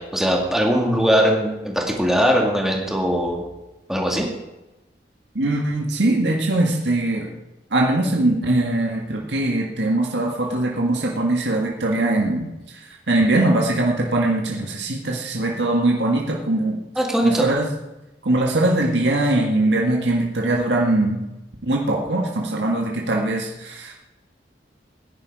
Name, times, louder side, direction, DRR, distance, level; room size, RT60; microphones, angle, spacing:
voice 1, 0.0-3.4 3.9-4.3 17.0-17.5, equal, ahead, 0 dB, 2.3 m, -20 dB
voice 2, 5.4-7.3 7.7-16.8 17.2-17.7 18.2-21.3 21.6-23.9, right 2 dB, 85° right, 0 dB, 1.9 m, -21 dB
17.0 x 10.5 x 4.9 m, 0.99 s
head